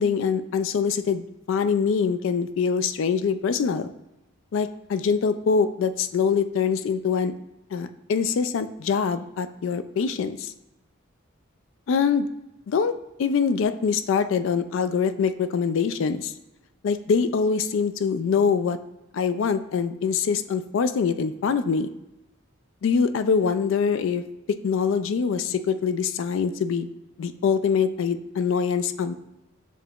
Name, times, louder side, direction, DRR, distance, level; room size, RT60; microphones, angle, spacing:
voice 1, 0.0-3.9 4.5-7.3 7.7-10.5 11.9-12.3 12.7-12.9 13.2-16.3 16.8-18.8 19.1-21.9 22.8-24.2 24.6-26.9 27.2-29.1, left 6 dB, 65° left, 11 dB, 0.3 m, -24 dB
7.0 x 2.8 x 2.4 m, 0.93 s
head